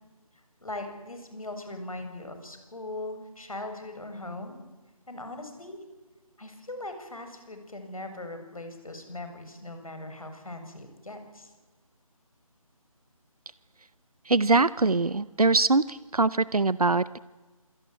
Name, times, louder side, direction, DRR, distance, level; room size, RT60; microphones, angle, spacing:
voice 1, 0.6-4.6 5.1-5.8 6.4-11.5, left 2 dB, 70° left, 7 dB, 7.6 m, -40 dB
voice 2, 14.2-17.2, right 3 dB, 85° right, 17 dB, 0.9 m, -23 dB
27.0 x 21.0 x 9.5 m, 1.2 s
figure-of-eight pair, 160°, 19 cm